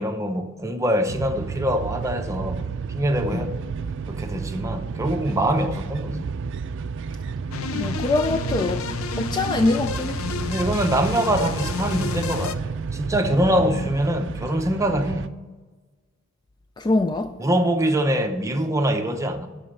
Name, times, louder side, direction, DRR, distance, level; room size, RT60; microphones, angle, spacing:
voice 1, 0.0-3.5 4.1-6.3 10.5-15.3 17.4-19.5, right 1 dB, 15° right, 0.8 m, -24 dB
sound 1, 1.1-15.3, right 5 dB, 60° right, 0.4 m, -31 dB
sound 2, 7.5-12.5, left 5 dB, 90° left, 0.5 m, -31 dB
voice 2, 7.7-8.9 9.2-10.2 13.5-13.6 16.8-17.3, left 2 dB, 20° left, 0.3 m, -23 dB
11.5 x 4.2 x 6.7 m
head